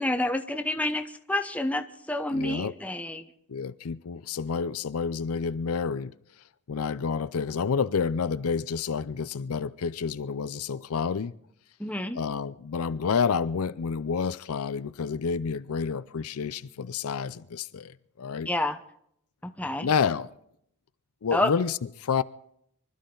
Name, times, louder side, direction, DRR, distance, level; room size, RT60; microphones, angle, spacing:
voice 1, 0.0-3.3 11.8-12.2 18.5-18.8 19.4-19.9 21.3-21.5, left 1 dB, 5° left, 0.8 m, -29 dB
voice 2, 2.3-2.7 3.5-6.1 6.7-11.3 12.2-18.5 19.8-20.3 21.2-22.2, left 6 dB, 80° left, 0.5 m, -29 dB
24.5 x 12.5 x 3.9 m
head